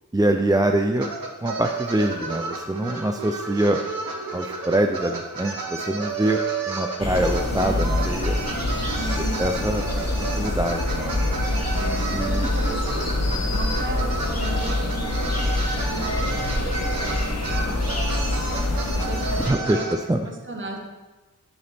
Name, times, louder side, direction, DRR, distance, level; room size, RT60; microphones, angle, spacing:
voice 1, 0.1-1.1 1.4-3.8 4.3-6.4 6.7-8.4 9.4-11.1 12.1-12.5 13.3-13.5 19.5-19.8 20.1-20.2, right 1 dB, 10° right, 4 dB, 0.4 m, -24 dB
sound 1, 1.0-19.9, right 4 dB, 85° right, 1.1 m, -32 dB
sound 2, 7.0-19.5, left 2 dB, 45° left, 1.2 m, -25 dB
voice 2, 9.0-9.4 11.7-12.1 12.4-13.1 13.4-18.0 18.9-19.9 20.2-20.8, right 2 dB, 35° right, 1 dB, 1.3 m, -36 dB
9.7 x 6.6 x 3.5 m, 1.2 s
wide cardioid pair, 90°, 34 cm